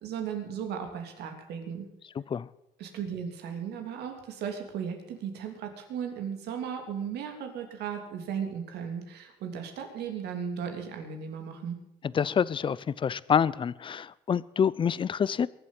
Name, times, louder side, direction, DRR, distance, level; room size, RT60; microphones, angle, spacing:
voice 1, 0.0-1.9 2.8-11.8, right 7 dB, 75° right, 3.2 m, -36 dB
voice 2, 12.1-15.5, left 7 dB, 30° left, 0.5 m, -27 dB
22.5 x 7.9 x 7.5 m
cardioid pair, 110°, 17 cm